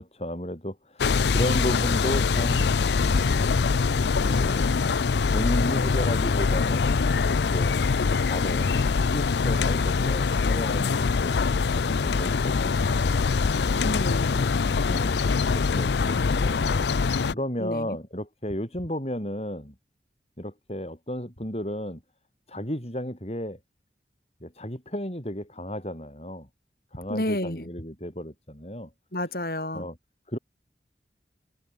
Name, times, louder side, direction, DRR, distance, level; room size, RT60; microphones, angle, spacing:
voice 1, 0.0-2.7 3.0-3.5 4.3-4.7 5.3-6.9 7.2-7.8 8.2-11.4 11.7-13.1 14.3-14.5 14.9-19.7 20.4-22.0 22.5-23.6 24.4-26.5 26.9-28.9 29.7-30.0 30.3-30.4, equal, 35° left, 8.0 m, -33 dB
sound 1, 1.0-17.3, left 4 dB, 75° left, 0.5 m, -23 dB
voice 2, 13.8-14.4 17.6-18.0 27.1-27.7 29.1-29.9, left 1 dB, 55° left, 7.6 m, -30 dB
head